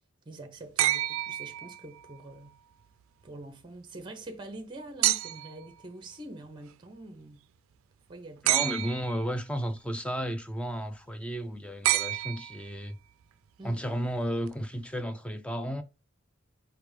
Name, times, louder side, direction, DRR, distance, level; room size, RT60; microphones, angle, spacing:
voice 1, 0.3-2.6 3.2-7.5 8.1-8.6 13.6-13.8, right 2 dB, 20° right, 0.7 m, -45 dB
sound 1, 0.8-2.2 5.0-5.6 8.5-9.3 11.8-12.9 14.5-14.6, right 14 dB, 70° right, 0.3 m, -28 dB
voice 2, 8.4-13.0 13.6-15.8, equal, 5° left, 0.4 m, -33 dB
4.8 x 3.4 x 3.2 m
head